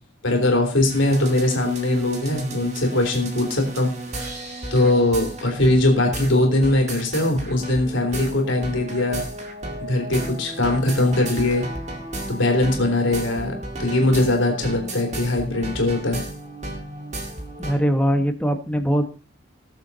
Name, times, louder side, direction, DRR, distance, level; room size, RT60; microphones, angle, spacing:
voice 1, 0.2-3.9 4.7-9.2 9.9-11.6 12.3-13.5 13.8-16.2, left 2 dB, 70° left, 2 dB, 3.2 m, -21 dB
sound 1, 0.9-17.7, right 1 dB, 35° right, 2.1 m, -34 dB
voice 2, 17.6-19.1, equal, 5° left, 6 dB, 1.2 m, -21 dB
19.5 x 7.1 x 4.1 m, 0.35 s
head